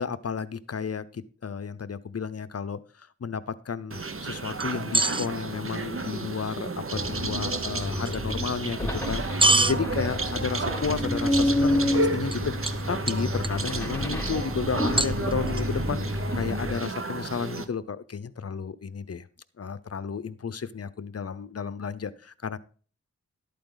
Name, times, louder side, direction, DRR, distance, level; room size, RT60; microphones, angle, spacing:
voice 1, 0.0-19.2 19.6-22.6, left 6 dB, 55° left, 15 dB, 0.8 m, -33 dB
sound 1, 3.9-17.7, right 3 dB, 50° right, 1.2 m, -32 dB
sound 2, 4.6-5.3 8.1-8.2 9.4-9.8 12.3-12.4 12.7-12.8 13.1-13.7 15.0-15.6, right 2 dB, 15° right, 0.5 m, -23 dB
sound 3, 6.9-16.8, left 1 dB, 5° left, 3.6 m, -29 dB
12.0 x 8.6 x 4.0 m, 0.41 s
wide cardioid pair, 95°, 29 cm